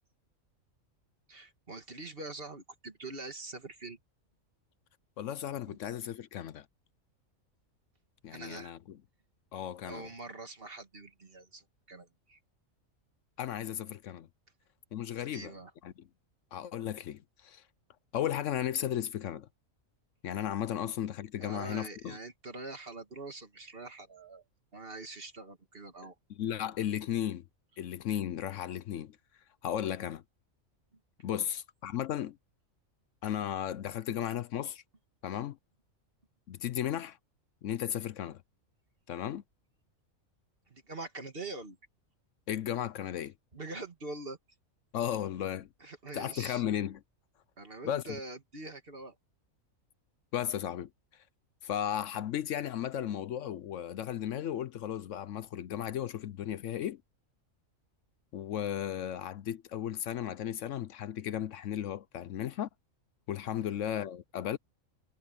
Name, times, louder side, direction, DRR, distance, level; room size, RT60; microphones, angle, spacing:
voice 1, 1.3-4.0 8.3-8.7 9.8-12.4 15.2-15.7 21.4-24.4 24.7-26.2 31.3-31.4 40.7-41.8 43.5-44.4 45.8-46.6 47.6-49.2 63.5-63.8, right 2 dB, 45° right, 2.3 m, -44 dB
voice 2, 5.2-6.7 8.2-9.0 9.5-10.1 13.4-14.3 14.9-15.5 15.8-16.1 16.5-17.6 18.1-19.5 20.2-22.2 26.3-27.4 27.8-29.2 29.6-30.2 31.2-32.4 33.2-34.8 35.2-35.6 36.5-37.2 37.6-38.4 39.1-39.4 42.5-43.3 44.9-45.7 46.1-47.0 47.8-48.0 50.3-50.9 51.6-57.0 58.3-62.7 63.3-64.6, left 10 dB, 70° left, 0.9 m, -35 dB
omnidirectional pair, 1.4 m